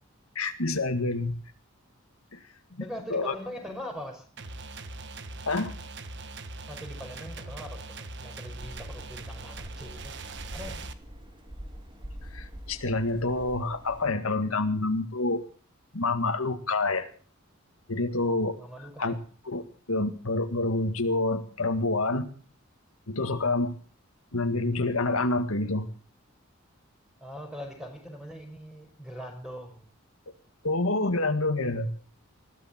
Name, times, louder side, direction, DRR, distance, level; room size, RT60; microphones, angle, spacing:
voice 1, 0.4-1.3 2.3-2.4 3.1-3.4 5.5-5.7 12.3-15.4 15.9-17.1 17.9-18.6 19.0-19.1 19.5-19.6 19.9-22.3 23.1-23.7 24.3-25.9 30.6-31.9, left 2 dB, 85° left, 7 dB, 1.9 m, -27 dB
voice 2, 2.8-4.3 6.7-10.1 10.5-10.8 18.6-19.2 27.2-29.9, equal, 5° right, 3 dB, 5.3 m, -41 dB
sound 1, 4.4-10.9, right 3 dB, 55° right, 1.5 m, -41 dB
sound 2, 8.6-14.1, equal, 25° right, 2.7 m, -44 dB
21.0 x 15.0 x 4.4 m, 0.42 s
head